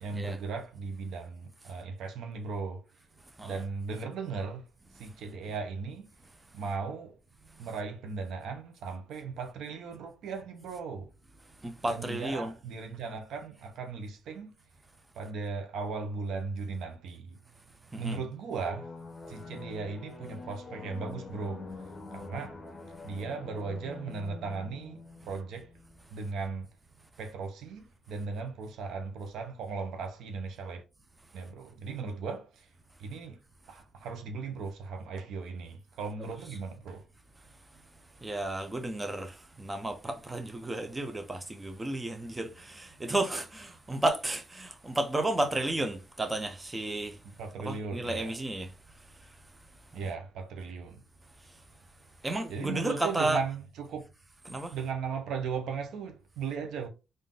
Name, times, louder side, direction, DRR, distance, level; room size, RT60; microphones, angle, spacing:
voice 1, 0.0-2.8 3.4-4.7 5.0-6.1 6.5-7.2 7.6-11.1 11.9-14.5 15.1-17.4 18.0-18.9 19.3-22.6 23.0-25.7 26.1-26.7 27.2-30.8 31.3-32.7 33.0-33.4 33.7-37.0 47.2-48.3 49.9-51.0 52.5-54.0 54.7-56.9, right 4 dB, 80° right, 0.7 m, -37 dB
voice 2, 11.6-12.5 17.9-18.2 38.2-47.2 47.6-48.7 49.2-49.3 52.2-53.4 54.5-54.8, right 2 dB, 15° right, 0.7 m, -32 dB
sound 1, 18.6-26.0, left 3 dB, 35° left, 0.9 m, -45 dB
3.7 x 2.6 x 3.7 m
cardioid pair, 90°, 0 cm